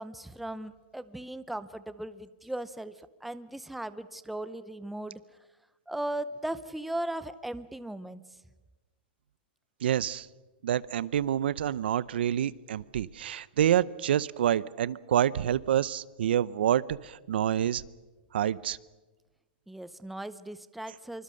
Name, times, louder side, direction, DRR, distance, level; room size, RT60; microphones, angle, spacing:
voice 1, 0.0-2.9 3.2-5.2 5.9-8.2 19.7-21.2, right 1 dB, ahead, 13 dB, 0.7 m, -37 dB
voice 2, 9.8-10.3 10.6-17.8 18.3-18.8, right 10 dB, 80° right, 19 dB, 0.7 m, -27 dB
26.0 x 24.0 x 6.5 m, 1.2 s
supercardioid pair, 155°, 6 cm